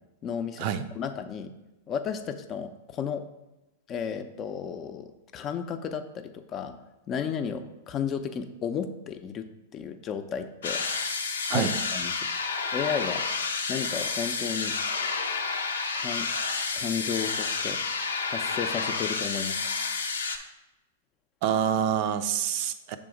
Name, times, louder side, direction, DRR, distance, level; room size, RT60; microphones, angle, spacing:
voice 1, 0.2-0.7 0.9-1.5 1.9-3.2 3.9-6.8 7.1-10.8 11.5-12.1 12.7-13.2 13.7-14.8 15.9-16.3 16.7-17.8 18.2-19.6, left 7 dB, 30° left, 8 dB, 0.6 m, -33 dB
sound 1, 10.6-20.4, left 4 dB, 90° left, 0.6 m, -30 dB
voice 2, 21.4-23.0, right 9 dB, 50° right, 10 dB, 0.5 m, -26 dB
6.8 x 3.7 x 5.0 m, 1.0 s
hypercardioid pair, 120°, 0 cm